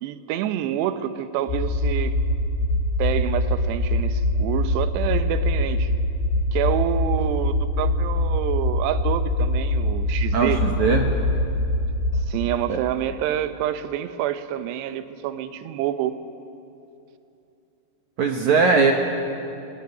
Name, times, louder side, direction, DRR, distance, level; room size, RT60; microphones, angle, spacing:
voice 1, 0.0-2.2 3.0-5.9 6.5-10.6 12.1-16.2, right 11 dB, 85° right, 11 dB, 3.0 m, -27 dB
sound 1, 1.5-12.3, left 1 dB, 75° left, 5.4 m, -23 dB
voice 2, 10.3-11.1 12.7-12.8 18.2-18.9, right 4 dB, 65° right, 3 dB, 1.9 m, -19 dB
20.5 x 19.0 x 9.5 m, 2.7 s
omnidirectional pair, 4.9 m